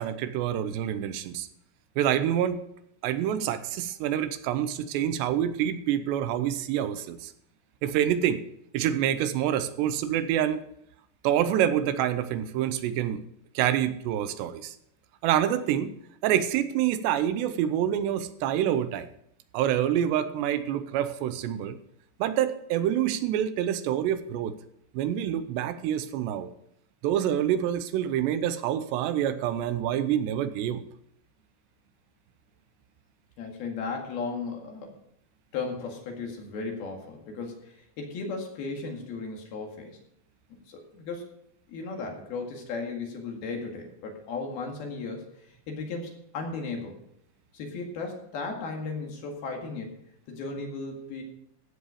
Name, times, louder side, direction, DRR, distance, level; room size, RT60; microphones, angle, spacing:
voice 1, 0.0-1.5 2.0-2.6 3.0-7.3 7.8-8.4 8.7-10.6 11.2-13.2 13.6-14.8 15.2-15.9 16.2-19.1 19.5-21.8 22.2-24.6 24.9-26.5 27.0-30.8, right 10 dB, 85° right, 11 dB, 2.9 m, -27 dB
voice 2, 33.4-34.9 35.5-40.0 40.5-41.3 41.7-45.3 45.7-47.0 47.5-49.9 50.3-51.2, left 4 dB, 65° left, 1 dB, 3.7 m, -35 dB
15.0 x 8.1 x 4.9 m, 0.73 s
omnidirectional pair, 5.0 m